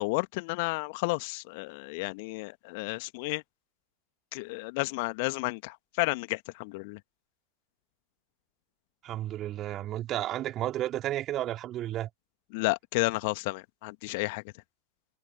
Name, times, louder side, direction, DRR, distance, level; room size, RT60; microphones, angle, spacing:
voice 1, 0.0-3.4 4.3-7.0 12.5-14.4, left 27 dB, 45° left, 1.7 m, -32 dB
voice 2, 9.0-12.1, right 13 dB, 30° right, 3.3 m, -32 dB
figure-of-eight pair, 90°, 0 cm